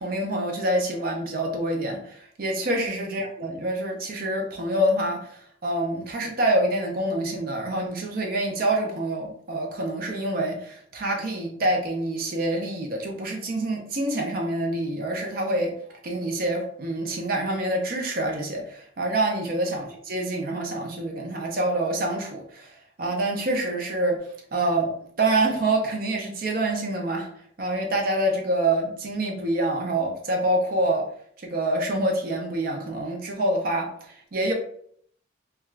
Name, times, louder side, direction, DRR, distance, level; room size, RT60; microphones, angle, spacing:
voice 1, 0.0-15.7 16.0-27.3 27.6-31.1 31.4-34.5, right 1 dB, 45° right, 1 dB, 0.5 m, -26 dB
2.3 x 2.3 x 3.1 m, 0.64 s
head